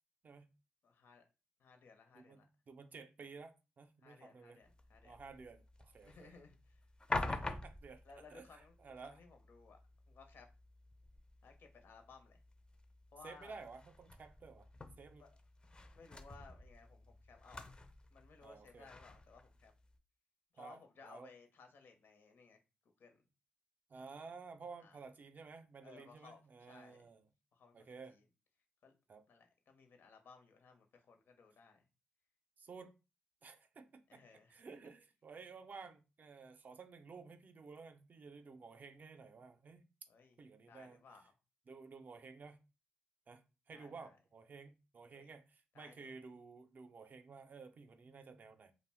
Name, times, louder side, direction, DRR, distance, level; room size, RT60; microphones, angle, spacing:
voice 1, 0.8-1.3 1.6-2.5 4.0-5.2 6.0-6.8 8.0-9.8 10.1-10.5 11.4-12.4 13.1-13.6 15.2-15.4 15.8-17.7 18.1-19.7 20.5-22.6 22.8-23.2 24.8-25.0 25.8-27.1 27.5-28.2 28.8-28.9 29.3-31.9 34.1-34.7 40.1-40.4 40.7-41.4 43.7-44.2 45.1-45.3 45.7-46.2, left 4 dB, 70° left, 0.7 m, -60 dB
voice 2, 2.1-4.6 5.0-6.3 7.1-8.0 8.3-9.2 13.2-14.7 15.0-15.2 18.4-18.9 20.6-21.3 23.9-27.2 27.7-28.2 29.1-29.2 32.6-33.0 33.4-34.2 34.5-39.8 40.4-41.0 41.7-42.6 43.3-48.7, right 4 dB, 45° right, 0.4 m, -54 dB
sound 1, 4.6-20.0, left 2 dB, 25° left, 0.4 m, -48 dB
2.4 x 2.1 x 3.4 m
cardioid pair, 75°, 4 cm